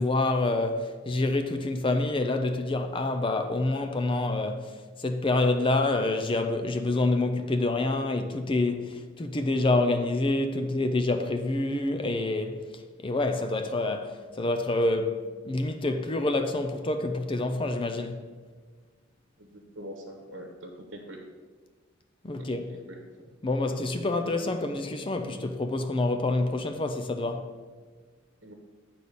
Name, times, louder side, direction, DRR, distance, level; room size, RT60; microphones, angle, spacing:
voice 1, 0.0-18.2 22.2-22.7 23.4-27.5, left 2 dB, 25° left, 0.4 m, -27 dB
voice 2, 19.4-21.2 22.9-23.0 28.4-28.5, equal, 65° right, 1.0 m, -43 dB
8.4 x 4.0 x 6.6 m
head